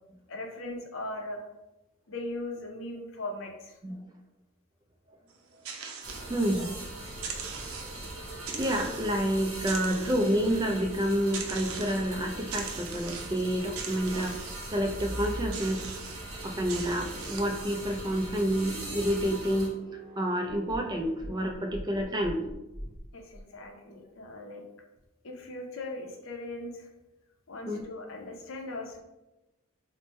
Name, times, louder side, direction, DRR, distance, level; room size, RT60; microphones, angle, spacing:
voice 1, 0.3-1.4 2.1-3.8 23.1-24.6 25.2-26.9 27.5-29.0, left 2 dB, 65° left, 2 dB, 0.6 m, -39 dB
sound 1, 5.3-6.8 7.1-8.1 8.5-9.2 9.6-10.6 11.3-12.1 12.5-13.5 13.8-14.7 15.5-16.2 16.7-17.6, right 5 dB, 90° right, 0.5 m, -41 dB
sound 2, 6.0-19.7, right 1 dB, 70° right, 0.9 m, -41 dB
voice 2, 6.3-6.8 8.5-14.4 14.7-19.8 20.2-22.4 27.7-27.8, equal, 20° right, 2 dB, 0.3 m, -29 dB
sound 3, 14.6-16.0 16.5-23.4, equal, 25° left, 0.6 m, -43 dB
3.1 x 2.1 x 4.1 m, 0.98 s
head